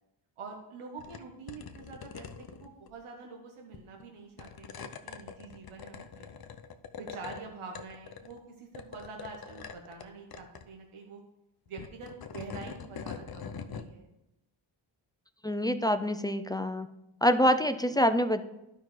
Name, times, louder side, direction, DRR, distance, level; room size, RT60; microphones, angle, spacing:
voice 1, 0.4-6.3 7.0-11.2 11.7-14.1, right 4 dB, 80° right, 1 dB, 1.2 m, -46 dB
sound 1, 1.0-1.2 1.5-2.9 3.7-4.0 4.4-7.4 7.7-8.4 8.7-10.0 10.3-10.6 11.7-13.9, left 6 dB, 50° left, 0.7 m, -43 dB
voice 2, 15.4-16.9 17.2-18.4, equal, 10° left, 9 dB, 0.3 m, -26 dB
12.0 x 5.3 x 3.2 m, 0.92 s
cardioid pair, 70°, 49 cm